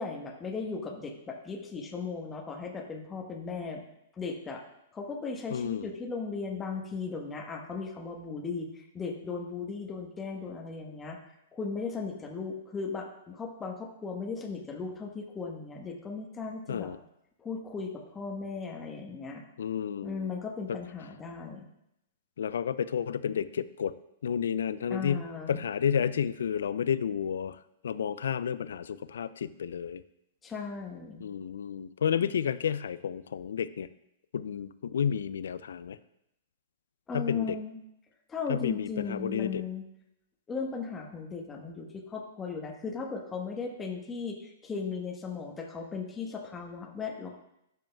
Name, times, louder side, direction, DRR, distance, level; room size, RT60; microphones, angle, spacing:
voice 1, 0.0-3.8 4.1-4.6 4.9-11.2 11.5-16.9 17.4-19.4 20.0-21.7 24.9-25.6 30.4-31.2 37.1-37.8 38.3-39.9 40.5-47.3, left 4 dB, 20° left, 1 dB, 1.1 m, -37 dB
voice 2, 5.5-5.9 16.7-17.0 19.6-20.3 22.4-23.9 24.2-27.6 27.8-30.0 31.2-33.9 34.3-36.0 37.1-37.6 38.5-39.6, left 8 dB, 75° left, 15 dB, 0.3 m, -31 dB
12.5 x 5.2 x 2.3 m, 0.81 s
hypercardioid pair, 110°, 0 cm